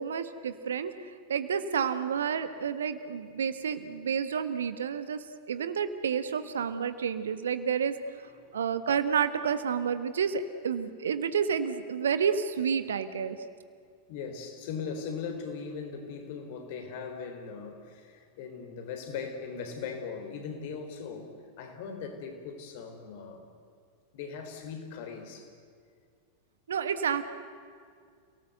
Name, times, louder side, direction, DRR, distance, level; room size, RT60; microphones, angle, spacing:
voice 1, 0.0-7.9 8.5-13.4 26.7-27.3, right 7 dB, 65° right, 11 dB, 1.4 m, -30 dB
voice 2, 8.4-8.7 14.1-23.4 24.1-25.5, left 5 dB, 50° left, 5 dB, 3.8 m, -39 dB
29.5 x 18.5 x 8.2 m, 2.2 s
figure-of-eight pair, 90°, 0 cm